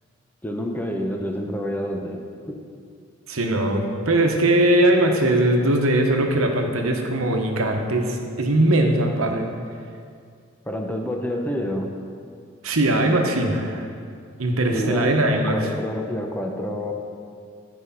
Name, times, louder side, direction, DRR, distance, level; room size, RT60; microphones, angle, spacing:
voice 1, 0.4-2.6 10.7-11.9 14.7-16.9, equal, 10° left, 2 dB, 0.6 m, -28 dB
voice 2, 3.3-9.5 12.6-13.8 14.4-15.7, right 1 dB, 85° right, 3 dB, 1.0 m, -20 dB
11.5 x 4.8 x 5.5 m, 2.3 s
head